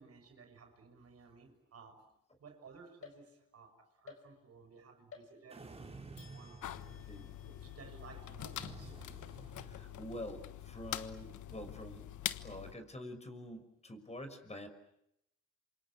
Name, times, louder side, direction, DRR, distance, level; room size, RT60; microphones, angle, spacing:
voice 1, 0.0-2.1 2.4-9.0, right 5 dB, 55° right, 6 dB, 6.1 m, -57 dB
sound 1, 3.0-3.7 4.1-4.7 5.1-5.8 6.2-9.6, left 6 dB, 50° left, 5.4 m, -59 dB
sound 2, 5.5-7.4 8.5-10.3, right 3 dB, 20° right, 4.3 m, -52 dB
sound 3, 6.6-12.7, left 12 dB, 75° left, 1.4 m, -44 dB
voice 2, 9.6-12.0 12.4-14.7, left 1 dB, 20° left, 7 dB, 5.9 m, -46 dB
28.0 x 25.5 x 8.4 m, 0.80 s
cardioid pair, 90°, 30 cm